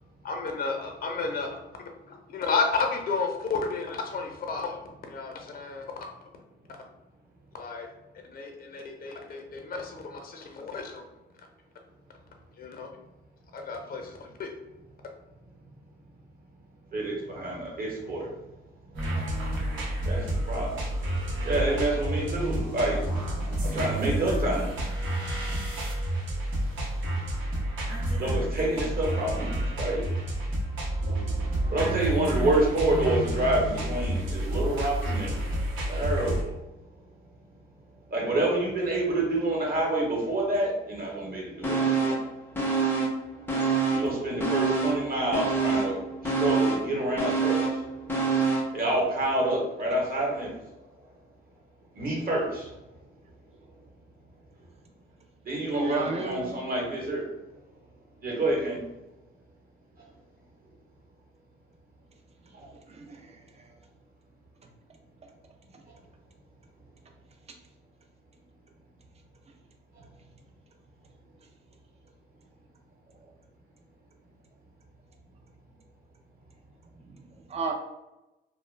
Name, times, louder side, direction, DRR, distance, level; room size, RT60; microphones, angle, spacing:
voice 1, 0.2-1.6 2.1-4.8 5.1-5.9 7.5-7.9 8.3-11.0 12.6-12.9 13.5-14.5, left 4 dB, 50° left, 3 dB, 0.6 m, -32 dB
voice 2, 16.9-18.3 20.1-20.2 20.5-20.7 21.4-23.0 23.7-24.7 28.2-30.0 31.7-35.3 35.9-36.5 38.1-42.2 43.9-46.0 46.4-47.6 48.7-50.5 51.9-52.7 55.5-57.2 58.2-58.8, right 1 dB, 50° right, -2 dB, 1.0 m, -27 dB
sound 1, 18.9-36.4, right 1 dB, 75° right, 0.8 m, -30 dB
sound 2, 41.6-42.3 42.6-44.1 44.4-48.8 49.1-49.2, right 4 dB, 10° left, 0.6 m, -26 dB
voice 3, 55.7-56.6 62.9-63.7 77.5-77.7, right 3 dB, 30° right, 3 dB, 0.5 m, -32 dB
2.3 x 2.1 x 3.1 m, 0.99 s
cardioid pair, 90°, 20 cm